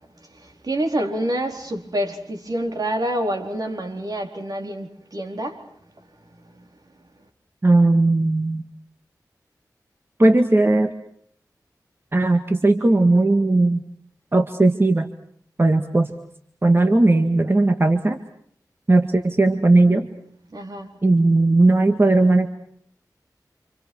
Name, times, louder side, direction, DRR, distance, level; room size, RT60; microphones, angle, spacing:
voice 1, 0.3-5.7 6.5-6.7 20.5-20.9, right 1 dB, 60° right, 4.5 m, -27 dB
voice 2, 7.6-8.7 10.2-10.9 12.1-13.8 14.3-15.1 15.6-16.1 16.6-18.2 18.9-20.1 21.0-22.5, right 2 dB, 35° right, 2.0 m, -17 dB
29.5 x 27.0 x 6.3 m
wide cardioid pair, 65°, 7 cm